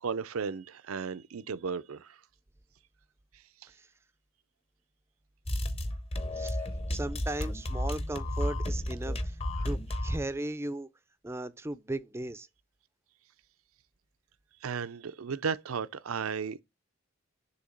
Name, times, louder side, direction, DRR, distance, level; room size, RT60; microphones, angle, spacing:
voice 1, 0.0-2.2 14.6-16.6, right 6 dB, 85° right, 0.5 m, -34 dB
sound 1, 5.5-10.3, left 1 dB, 30° left, 0.7 m, -33 dB
voice 2, 6.9-9.4 9.6-10.9 11.2-12.5, right 2 dB, 10° right, 0.4 m, -36 dB
6.8 x 2.8 x 5.1 m
head